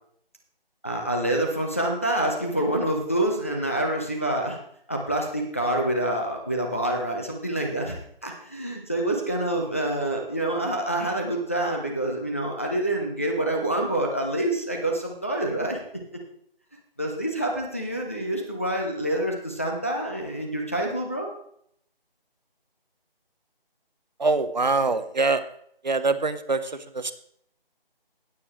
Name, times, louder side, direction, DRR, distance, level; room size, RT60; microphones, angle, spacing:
voice 1, 0.8-4.6 4.9-15.8 17.0-21.3, right 1 dB, 15° left, 0 dB, 0.6 m, -27 dB
voice 2, 24.2-25.4 25.8-27.1, right 3 dB, 50° right, 12 dB, 0.7 m, -24 dB
18.0 x 6.8 x 3.1 m, 0.67 s
figure-of-eight pair, 160°, 29 cm